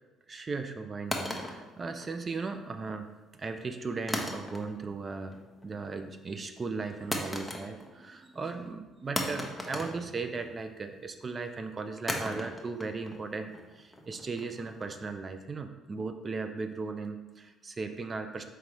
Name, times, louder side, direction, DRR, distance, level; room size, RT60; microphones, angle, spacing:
voice 1, 0.3-3.1 3.4-18.4, right 4 dB, 35° right, 7 dB, 0.4 m, -37 dB
sound 1, 1.1-2.5 4.1-4.9 5.2-5.7 7.1-8.1 8.3-8.4 9.2-10.7 12.1-15.1, left 1 dB, 10° left, 0.8 m, -37 dB
4.5 x 3.8 x 3.1 m, 1.2 s
hypercardioid pair, 60°, 0 cm